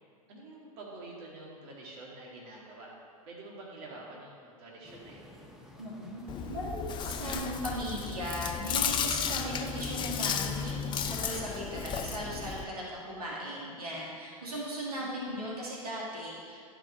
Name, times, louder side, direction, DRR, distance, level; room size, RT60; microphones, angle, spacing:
voice 1, 0.3-2.9 3.3-5.3 15.0-15.4, right 2 dB, 50° right, -3 dB, 2.1 m, -47 dB
sound 1, 4.8-11.7, left 1 dB, ahead, 0.9 m, -53 dB
voice 2, 5.8-16.6, equal, 85° right, -5 dB, 2.0 m, -37 dB
Chewing mastication, 6.3-12.6, left 7 dB, 25° left, 0.5 m, -34 dB
11.5 x 5.2 x 4.3 m, 2.3 s
hypercardioid pair, 105°, 19 cm